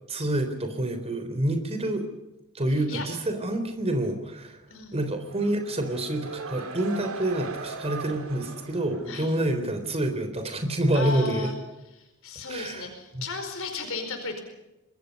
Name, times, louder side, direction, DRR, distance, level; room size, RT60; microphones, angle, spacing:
voice 1, 0.1-2.0 2.5-4.6 4.9-11.5 12.5-12.9 13.1-13.3, right 1 dB, 30° right, 6 dB, 3.8 m, -27 dB
voice 2, 2.7-3.0 4.7-5.1 9.1-9.4 10.9-11.5 12.0-14.4, left 4 dB, 65° left, 5 dB, 4.6 m, -35 dB
sound 1, 5.3-9.8, right 4 dB, 70° right, 2.7 m, -39 dB
25.5 x 22.0 x 5.4 m, 0.97 s
head